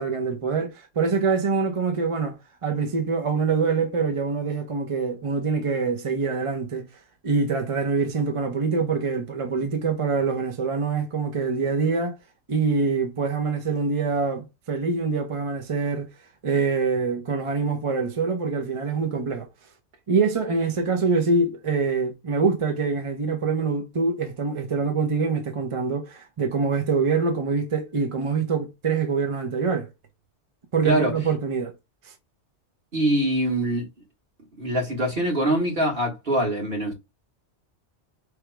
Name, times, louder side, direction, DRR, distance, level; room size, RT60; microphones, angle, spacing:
voice 1, 0.0-2.4 2.6-6.9 7.2-12.2 12.5-16.1 16.4-19.5 20.1-29.9 30.7-31.7, right 4 dB, 35° right, 0.6 m, -25 dB
voice 2, 30.8-31.1 32.9-33.9 34.6-36.9, right 1 dB, 50° right, 1.8 m, -23 dB
3.3 x 3.0 x 4.6 m
omnidirectional pair, 1.2 m